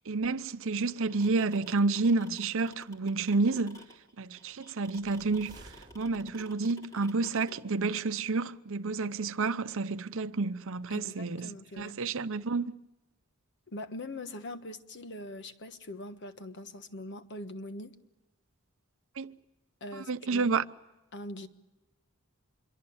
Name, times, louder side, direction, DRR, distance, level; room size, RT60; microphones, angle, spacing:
voice 1, 0.1-3.8 4.2-5.6 5.9-11.5 11.8-12.7 19.2-19.4 20.1-20.6, right 3 dB, 65° right, 0.8 m, -30 dB
sound 1, 0.9-7.6, equal, 15° left, 3.5 m, -51 dB
sound 2, 4.8-6.6, right 1 dB, 20° right, 4.4 m, -54 dB
voice 2, 10.9-12.0 13.7-17.9 19.8-20.5 21.1-21.5, left 1 dB, 55° left, 1.4 m, -42 dB
26.0 x 23.5 x 7.2 m
head